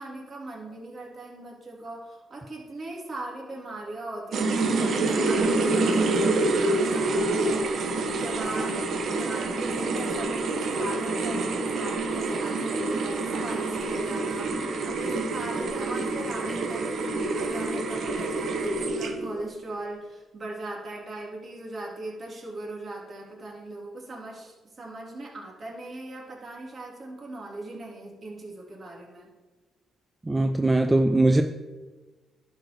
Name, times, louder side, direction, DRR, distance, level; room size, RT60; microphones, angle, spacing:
voice 1, 0.0-29.3, right 2 dB, 40° right, -3 dB, 3.3 m, -39 dB
sound 1, 4.3-19.4, right 2 dB, 60° right, 1.2 m, -27 dB
voice 2, 30.2-31.4, right 2 dB, 15° right, 6 dB, 0.5 m, -21 dB
11.0 x 4.8 x 6.2 m, 1.3 s
cardioid pair, 90°, 0 cm